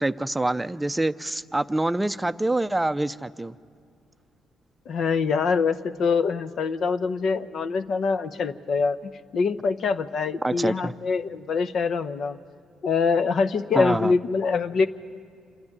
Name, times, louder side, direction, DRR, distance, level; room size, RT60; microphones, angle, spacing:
voice 1, 0.0-3.5 10.4-10.9 13.7-14.1, right 2 dB, 15° right, 13 dB, 0.5 m, -26 dB
voice 2, 4.9-12.4 12.8-14.9, left 5 dB, 60° left, 11 dB, 0.8 m, -24 dB
26.0 x 10.5 x 9.8 m, 2.3 s
supercardioid pair, 65°, 0 cm